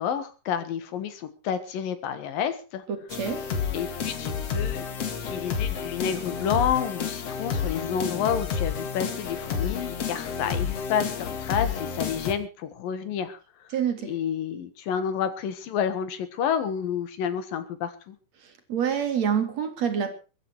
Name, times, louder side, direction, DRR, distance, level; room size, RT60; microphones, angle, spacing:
voice 1, 0.0-2.8 3.7-4.9 5.2-13.7 14.1-18.2, left 8 dB, 85° left, 11 dB, 3.4 m, -30 dB
sound 1, 3.1-12.3, left 6 dB, 50° left, 2.8 m, -30 dB
voice 2, 3.1-3.4 13.7-14.1 18.7-20.2, right 8 dB, 55° right, 7 dB, 3.2 m, -26 dB
23.0 x 9.8 x 4.6 m, 0.34 s
omnidirectional pair, 3.9 m